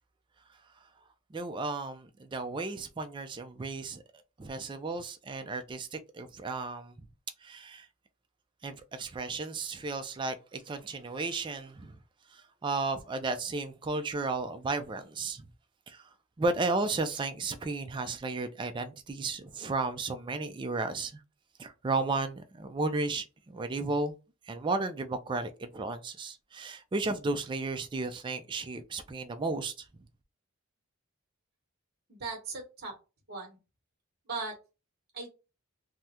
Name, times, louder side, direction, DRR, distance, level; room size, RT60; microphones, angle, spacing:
voice 1, 1.3-4.0 4.4-6.9 7.4-7.9 8.6-12.0 12.3-15.5 15.9-16.1 16.4-21.2 21.6-24.1 24.4-29.9, right 3 dB, 20° right, 0.3 m, -34 dB
voice 2, 32.1-32.9 33.3-33.6 34.3-34.5 35.1-35.3, right 4 dB, 45° right, 1.0 m, -38 dB
3.5 x 2.1 x 2.8 m
head